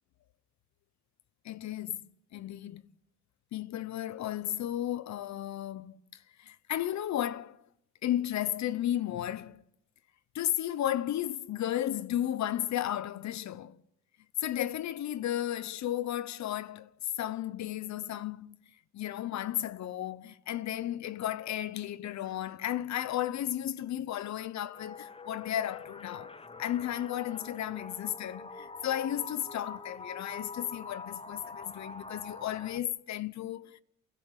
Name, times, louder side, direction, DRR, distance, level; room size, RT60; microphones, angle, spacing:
voice 1, 1.4-2.8 3.5-7.6 8.0-9.6 10.3-13.8 14.4-16.9 17.2-18.6 18.9-26.3 26.6-33.8, left 12 dB, 65° left, 0.9 m, -34 dB
sound 1, 24.7-32.8, left 4 dB, 20° left, 0.9 m, -45 dB
28.5 x 16.5 x 8.3 m
cardioid pair, 90°, 30 cm